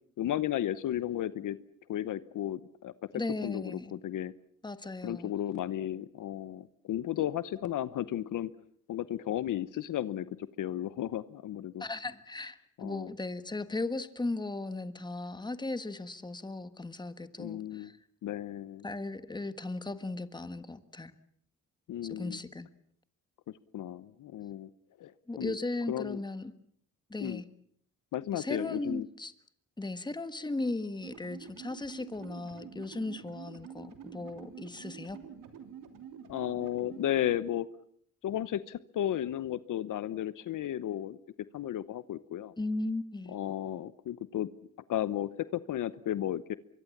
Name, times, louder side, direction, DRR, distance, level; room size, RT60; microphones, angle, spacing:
voice 1, 0.2-1.6 1.9-4.3 5.0-8.5 8.9-11.8 12.8-13.1 17.4-17.9 18.2-18.8 21.9-22.4 23.7-24.7 25.0-25.1 25.4-25.6 25.9-26.2 27.2-27.4 28.1-29.1 36.3-37.7 38.2-41.2 41.5-42.5 43.3-44.5 44.9-46.6, left 12 dB, 70° left, 16 dB, 0.9 m, -34 dB
voice 2, 3.1-3.9 4.6-5.3 11.8-18.0 18.8-21.1 22.0-22.7 25.3-26.5 27.1-27.4 28.3-29.3 29.8-35.2 42.6-43.4, left 2 dB, 15° left, 11 dB, 1.5 m, -37 dB
sound 1, 31.0-37.4, right 8 dB, 85° right, 3.2 m, -48 dB
24.5 x 23.5 x 7.2 m, 0.65 s
cardioid pair, 105°, 32 cm